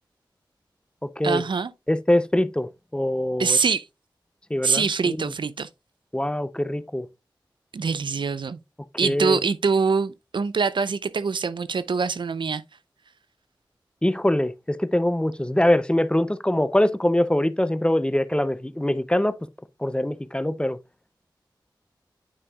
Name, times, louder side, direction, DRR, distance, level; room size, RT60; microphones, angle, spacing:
voice 1, 1.2-1.7 3.4-3.9 4.6-5.7 7.7-8.6 9.0-12.6, right 5 dB, 80° right, 0.5 m, -24 dB
voice 2, 1.9-3.6 4.5-5.3 6.1-7.1 9.0-9.4 14.0-19.4 19.8-20.8, left 1 dB, 10° left, 0.5 m, -23 dB
9.7 x 5.3 x 2.3 m
wide cardioid pair, 50°, 8 cm